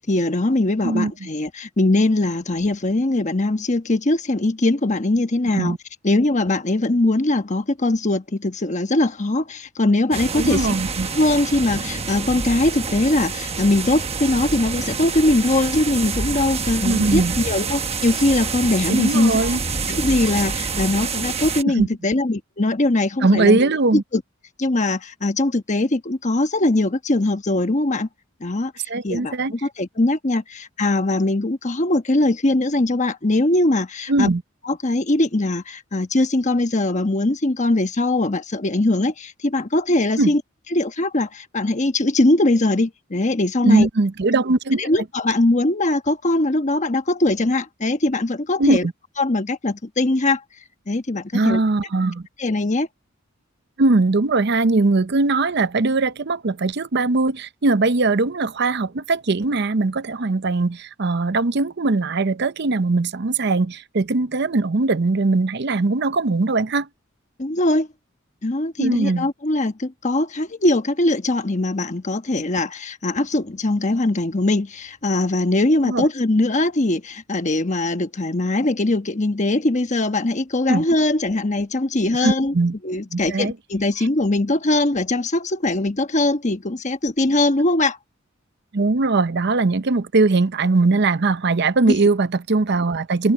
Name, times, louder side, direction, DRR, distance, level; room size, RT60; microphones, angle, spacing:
voice 1, 0.0-5.8 6.0-10.7 11.1-19.6 19.9-24.2 24.6-28.1 28.4-34.3 34.6-40.4 40.7-43.9 44.8-48.9 49.2-50.4 50.9-51.6 52.4-52.9 67.4-67.9 68.4-82.5 82.8-88.0 91.9-92.0, left 2 dB, 35° left, 1.2 m, -21 dB
voice 2, 0.8-1.3 5.5-5.8 10.3-11.1 16.8-17.3 18.9-19.6 21.8-21.9 23.2-24.0 28.9-29.5 34.1-34.4 40.2-40.3 43.6-44.9 48.6-48.9 51.3-52.2 53.8-66.9 68.8-69.3 75.8-76.0 80.7-80.8 82.2-82.7 83.1-83.5 88.7-93.3, right 3 dB, 55° right, 0.7 m, -20 dB
sound 1, 10.1-21.6, right 4 dB, 30° right, 1.1 m, -27 dB
head